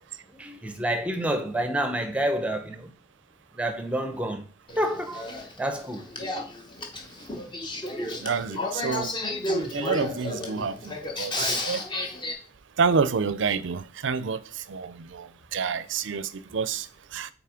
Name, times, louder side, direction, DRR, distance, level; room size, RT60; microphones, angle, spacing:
voice 1, 0.3-2.9 3.5-4.5 4.8-5.3 5.6-6.1, right 1 dB, 5° right, 0.7 m, -28 dB
Male speech man speaking / Female speech woman speaking / Conversation, 4.7-12.3, left 2 dB, 25° left, 0.9 m, -32 dB
voice 2, 8.2-9.1 9.5-11.8 12.8-14.4 14.7-16.9 17.1-17.3, right 5 dB, 70° right, 0.5 m, -28 dB
5.7 x 4.1 x 5.0 m
head